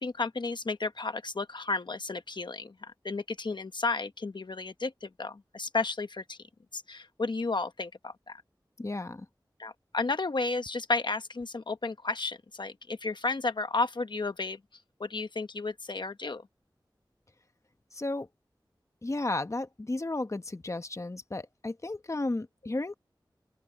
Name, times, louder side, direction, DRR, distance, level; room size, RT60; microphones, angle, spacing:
voice 1, 0.0-6.4 6.7-8.4 9.6-14.6 15.0-16.4, left 3 dB, 70° left, 1.0 m, -33 dB
voice 2, 8.8-9.3 17.9-18.3 19.0-22.9, left 2 dB, 40° left, 1.1 m, -33 dB
open air
wide cardioid pair, 60°, 8 cm